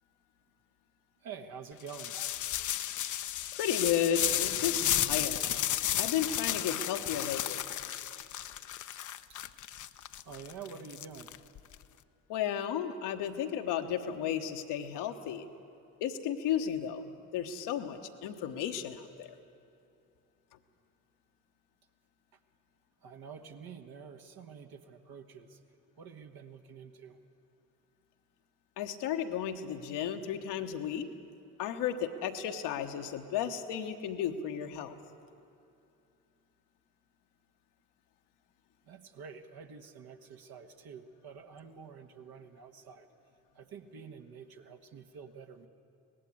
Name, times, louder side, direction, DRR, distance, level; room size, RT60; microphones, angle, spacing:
voice 1, 1.2-2.4 10.2-11.3 23.0-25.6 26.0-27.2 38.9-43.1 43.5-45.7, right 6 dB, 55° right, 5 dB, 1.5 m, -48 dB
sound 1, 1.9-11.7, left 11 dB, 40° left, 0.7 m, -33 dB
voice 2, 3.5-5.4 6.0-7.6 12.3-15.5 16.0-19.4 28.8-31.1 31.6-35.0, left 9 dB, 65° left, 6 dB, 1.2 m, -33 dB
18.5 x 15.0 x 9.6 m, 2.6 s
figure-of-eight pair, 45°, 45 cm